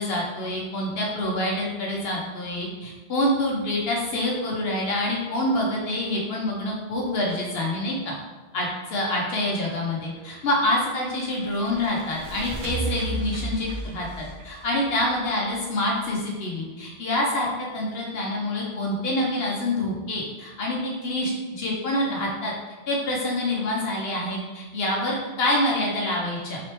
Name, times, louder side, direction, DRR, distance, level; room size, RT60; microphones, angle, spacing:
voice 1, 0.0-8.1 8.5-22.5 22.9-26.6, left 1 dB, 65° left, -2 dB, 0.9 m, -26 dB
sound 1, 10.1-15.8, right 2 dB, 90° right, 1.0 m, -35 dB
3.9 x 3.2 x 3.0 m, 1.2 s
omnidirectional pair, 1.1 m